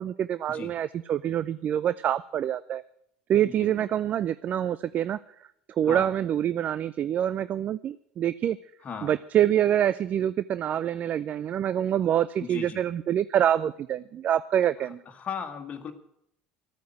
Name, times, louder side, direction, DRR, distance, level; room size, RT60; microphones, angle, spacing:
voice 1, 0.0-2.8 3.3-5.2 5.8-8.6 9.0-15.0, right 10 dB, 45° right, 17 dB, 0.4 m, -26 dB
voice 2, 3.4-3.9 5.8-6.1 8.8-9.2 12.4-12.8 15.1-15.9, left 6 dB, 35° left, 4 dB, 1.7 m, -37 dB
14.0 x 9.3 x 7.7 m, 0.73 s
hypercardioid pair, 65°, 4 cm